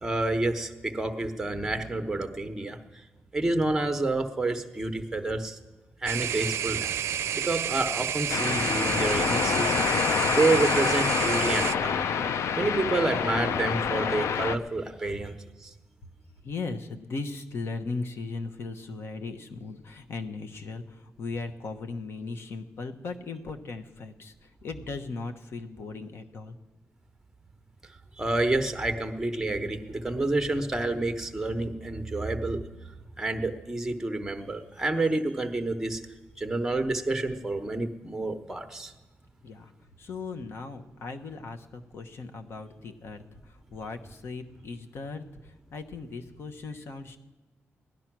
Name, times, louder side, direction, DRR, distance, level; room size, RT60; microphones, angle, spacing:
voice 1, 0.0-2.8 3.3-5.6 6.0-7.2 7.4-9.9 10.3-12.1 12.5-15.3 15.6-15.7 28.2-32.6 33.2-36.0 36.4-38.9, right 2 dB, 10° right, 6 dB, 1.0 m, -29 dB
sound 1, 6.1-11.8, right 9 dB, 85° right, 0.4 m, -30 dB
sound 2, 8.3-14.6, left 7 dB, 90° left, 0.5 m, -27 dB
voice 2, 16.4-26.6 39.4-39.7 40.0-47.2, left 3 dB, 60° left, 7 dB, 1.1 m, -38 dB
16.5 x 11.5 x 6.1 m, 1.2 s
wide cardioid pair, 165°, 5 cm